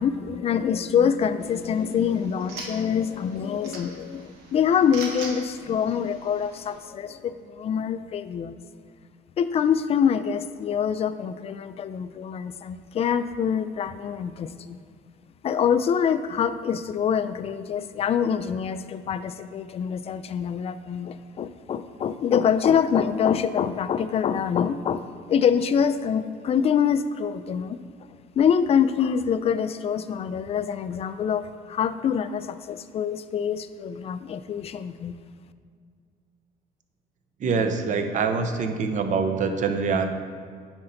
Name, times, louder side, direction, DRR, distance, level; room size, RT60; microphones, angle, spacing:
voice 1, 0.0-8.6 9.4-14.8 15.4-27.8 28.4-35.2, left 7 dB, 35° left, 12 dB, 0.4 m, -25 dB
sound 1, 1.4-6.8, right 3 dB, 85° right, 1.3 m, -42 dB
voice 2, 37.4-40.1, right 5 dB, 50° right, 7 dB, 0.7 m, -24 dB
9.7 x 4.4 x 3.9 m, 2.1 s
cardioid pair, 110°, 17 cm